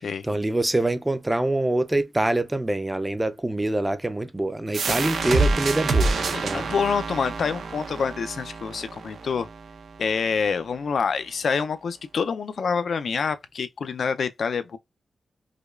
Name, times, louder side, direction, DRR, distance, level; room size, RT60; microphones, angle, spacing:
voice 1, 0.2-6.7, right 1 dB, 10° right, 0.4 m, -25 dB
sound 1, 4.7-10.1, right 3 dB, 80° right, 0.6 m, -27 dB
voice 2, 6.3-9.5 10.0-14.8, left 5 dB, 65° left, 0.4 m, -27 dB
4.9 x 2.2 x 2.3 m
wide cardioid pair, 120°, 0 cm